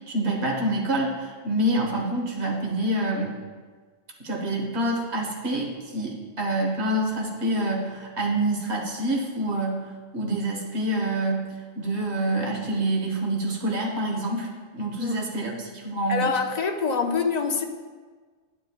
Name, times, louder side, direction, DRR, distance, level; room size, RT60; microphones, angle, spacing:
voice 1, 0.1-3.4 4.2-9.8 10.1-11.5 11.8-14.5 14.7-16.3, right 1 dB, 60° right, -2 dB, 1.7 m, -27 dB
voice 2, 16.1-17.6, left 5 dB, 45° left, 4 dB, 0.6 m, -25 dB
10.0 x 9.7 x 2.4 m, 1.5 s
omnidirectional pair, 1.3 m